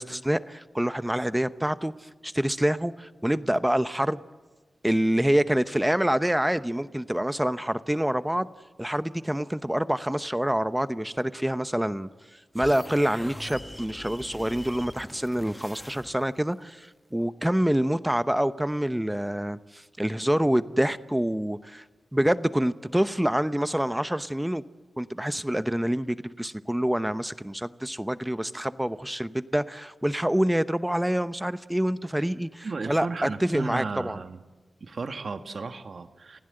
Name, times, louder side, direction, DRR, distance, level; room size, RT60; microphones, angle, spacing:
voice 1, 0.0-4.2 4.8-8.5 8.8-12.1 12.5-21.8 22.1-24.6 25.0-34.2, right 1 dB, 10° right, 13 dB, 0.8 m, -26 dB
sound 1, 12.5-16.4, left 1 dB, 10° left, 1.3 m, -42 dB
voice 2, 32.6-34.4 34.8-36.4, right 4 dB, 60° right, 8 dB, 1.4 m, -34 dB
28.5 x 16.0 x 7.8 m, 1.2 s
cardioid pair, 65°, 0 cm